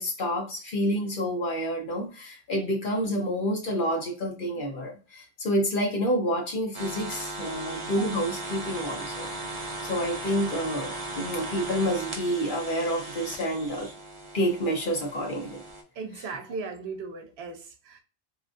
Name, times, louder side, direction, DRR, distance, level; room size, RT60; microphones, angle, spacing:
voice 1, 0.0-13.9 14.3-15.6, equal, 55° left, 1.0 m, -29 dB
Electrical Noise, 6.7-15.8, right 2 dB, 40° right, 0.7 m, -37 dB
voice 2, 16.0-18.0, right 4 dB, 85° right, 0.9 m, -37 dB
2.9 x 2.4 x 2.5 m
omnidirectional pair, 1.0 m